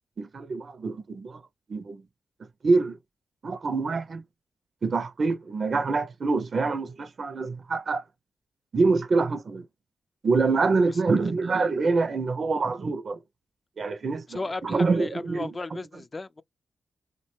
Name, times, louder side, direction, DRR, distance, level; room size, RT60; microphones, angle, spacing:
voice 1, 0.2-1.4 1.7-2.0 2.6-3.0 3.4-4.2 4.8-8.0 8.7-9.7 10.2-13.2 13.8-15.5, right 4 dB, 55° right, 0.4 m, -25 dB
voice 2, 14.3-16.4, left 2 dB, 40° left, 0.4 m, -35 dB
2.5 x 2.1 x 3.0 m
supercardioid pair, 40°, 0 cm